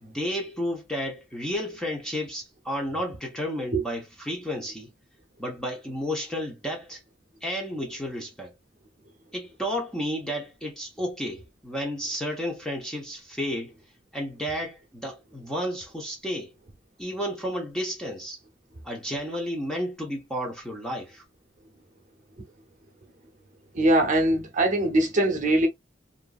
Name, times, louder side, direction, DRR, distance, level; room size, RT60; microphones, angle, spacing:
voice 1, 0.0-4.9 5.4-7.0 7.4-8.5 9.3-13.7 14.1-16.5 17.0-18.4 18.8-21.2, equal, 5° left, 0.8 m, -32 dB
voice 2, 23.7-25.7, right 1 dB, 45° right, 0.9 m, -22 dB
2.9 x 2.6 x 2.3 m
head